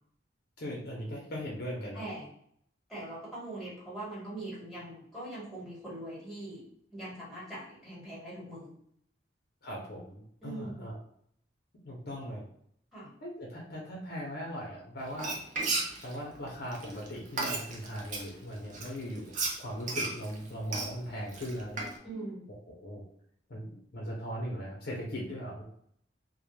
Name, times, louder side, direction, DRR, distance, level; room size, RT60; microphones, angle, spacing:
voice 1, 0.6-2.0 9.6-10.9 11.8-12.4 13.2-15.3 16.0-19.3 19.6-21.9 22.8-23.0 23.5-25.6, equal, 60° left, -3 dB, 0.6 m, -39 dB
voice 2, 1.9-2.3 2.9-6.6 6.9-8.7 10.4-10.8 12.9-13.1 22.0-22.5, right 1 dB, ahead, -7 dB, 1.2 m, -42 dB
Frying (food), 15.1-18.3 18.7-22.0, right 3 dB, 45° right, 0.5 m, -34 dB
2.1 x 2.1 x 3.0 m, 0.67 s
head